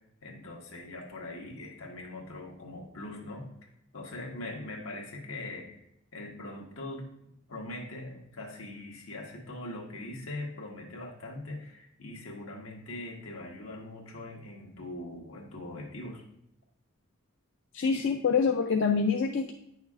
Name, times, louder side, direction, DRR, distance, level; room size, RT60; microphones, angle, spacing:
voice 1, 0.2-3.5 3.9-5.8 6.1-16.2, left 2 dB, 80° left, 0 dB, 1.5 m, -41 dB
voice 2, 17.7-19.5, left 5 dB, 60° left, 3 dB, 0.4 m, -26 dB
9.5 x 6.3 x 2.4 m, 0.80 s
head